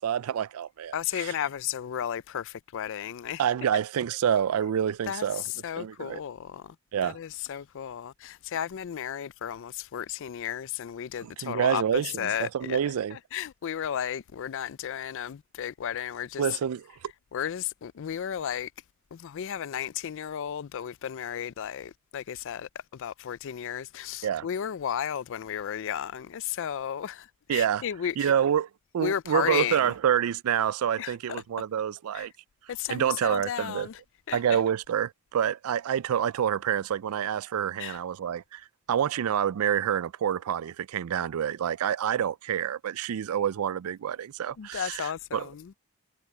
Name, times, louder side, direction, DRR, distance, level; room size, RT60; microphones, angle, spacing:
voice 1, 0.0-1.3 3.4-5.4 5.8-6.2 6.9-7.2 11.2-13.2 16.4-16.8 24.2-24.5 27.5-27.8 28.2-28.7 28.9-32.3 32.9-33.9 34.3-38.6 38.9-45.5, right 9 dB, 75° right, 0.4 m, -27 dB
voice 2, 0.9-3.4 5.1-6.8 7.0-12.8 13.1-16.6 17.3-18.7 19.1-28.3 29.0-29.9 31.0-31.4 32.1-32.3 32.7-34.0 34.3-34.6 37.8-38.0 44.6-45.7, left 9 dB, 60° left, 0.4 m, -34 dB
head